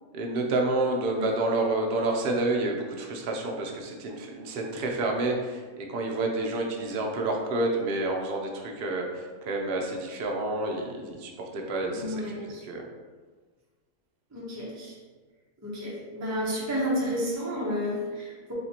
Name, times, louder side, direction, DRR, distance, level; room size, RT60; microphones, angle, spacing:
voice 1, 0.1-12.9, right 2 dB, 65° right, 1 dB, 0.6 m, -29 dB
voice 2, 11.9-12.6 14.3-15.0 15.6-18.5, equal, 15° right, -6 dB, 0.6 m, -31 dB
4.3 x 2.8 x 2.8 m, 1.4 s
omnidirectional pair, 1.6 m